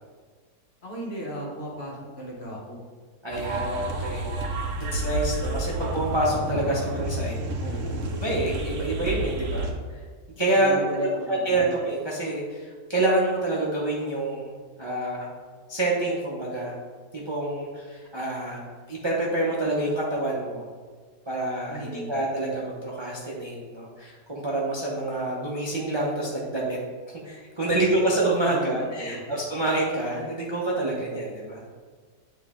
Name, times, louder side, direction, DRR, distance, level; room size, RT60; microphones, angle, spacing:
voice 1, 0.8-2.8 7.6-8.1 10.5-11.7 21.7-22.1 27.6-27.7 28.4-29.4, right 1 dB, 40° left, -3 dB, 1.2 m, -37 dB
voice 2, 3.2-4.3 4.8-7.4 8.2-10.0 10.4-15.3 15.7-16.8 17.1-18.6 18.9-20.7 21.3-26.8 27.2-31.6, right 2 dB, 25° right, -4 dB, 0.5 m, -27 dB
sound 1, 3.3-9.7, right 1 dB, 60° right, 0.9 m, -30 dB
9.0 x 3.2 x 3.6 m, 1.5 s
omnidirectional pair, 1.8 m